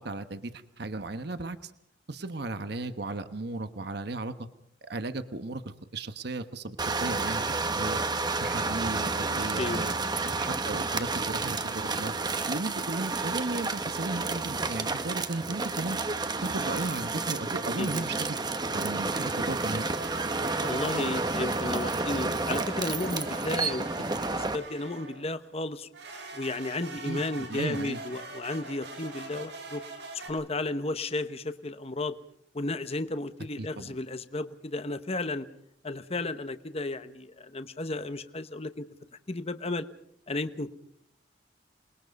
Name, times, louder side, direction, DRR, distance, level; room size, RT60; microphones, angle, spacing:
voice 1, 0.0-1.7 2.1-4.5 4.8-8.0 8.4-9.9 10.2-12.1 12.5-16.0 16.4-18.4 18.7-19.8 27.0-28.0 33.6-33.9, right 2 dB, 60° right, 10 dB, 1.2 m, -35 dB
sound 1, 6.8-24.6, right 3 dB, 25° right, 1.1 m, -30 dB
voice 2, 9.5-9.8 17.8-18.0 20.5-23.9 24.3-25.9 26.3-29.8 30.1-32.1 32.5-35.5 35.8-38.9 39.3-39.9 40.3-40.7, left 2 dB, 35° left, 11 dB, 1.0 m, -33 dB
sound 2, 16.8-17.8 18.9-25.3 25.9-30.3, right 3 dB, 80° right, 6.6 m, -44 dB
28.0 x 21.0 x 5.3 m, 0.70 s
head